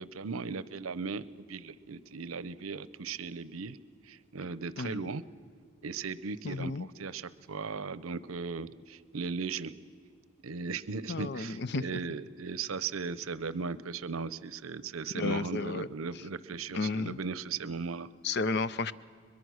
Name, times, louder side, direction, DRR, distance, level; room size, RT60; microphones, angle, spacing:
voice 1, 0.0-3.8 4.0-5.2 5.8-9.7 10.4-18.1, right 4 dB, 85° right, 17 dB, 0.7 m, -37 dB
voice 2, 4.8-5.1 6.4-6.9 11.1-12.0 15.1-15.9 16.7-17.2 18.2-18.9, left 3 dB, 50° left, 16 dB, 0.5 m, -32 dB
22.5 x 22.0 x 6.3 m, 2.1 s
head